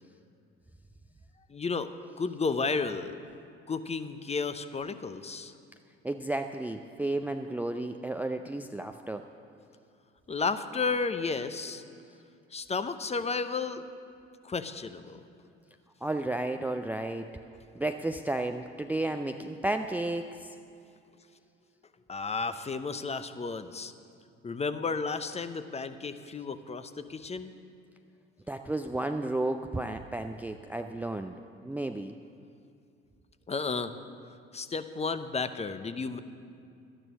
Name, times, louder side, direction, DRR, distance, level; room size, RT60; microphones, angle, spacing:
voice 1, 1.5-1.9 2.2-3.2 3.7-5.5 10.3-11.8 12.5-13.8 14.4-15.2 22.1-23.9 24.4-27.5 33.5-33.9 34.5-36.2, left 4 dB, 20° left, 11 dB, 0.8 m, -32 dB
voice 2, 6.0-9.2 16.0-17.3 17.8-20.5 28.5-31.4 31.6-32.2, right 2 dB, 5° right, 7 dB, 0.5 m, -32 dB
12.0 x 10.0 x 6.2 m, 2.5 s
hypercardioid pair, 60°, 29 cm